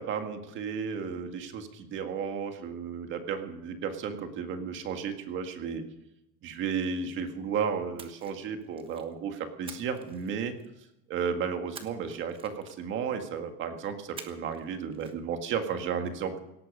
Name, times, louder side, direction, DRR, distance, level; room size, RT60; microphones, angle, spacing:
voice 1, 0.0-5.8 6.4-10.5 11.1-16.4, right 6 dB, 35° right, 6 dB, 1.9 m, -33 dB
Splash splatter, 8.0-9.1 9.7-10.8 11.7-13.0 14.2-14.7 14.9-15.1, right 5 dB, 15° right, 1.2 m, -48 dB
18.0 x 13.5 x 5.5 m, 0.89 s
cardioid pair, 175°, 34 cm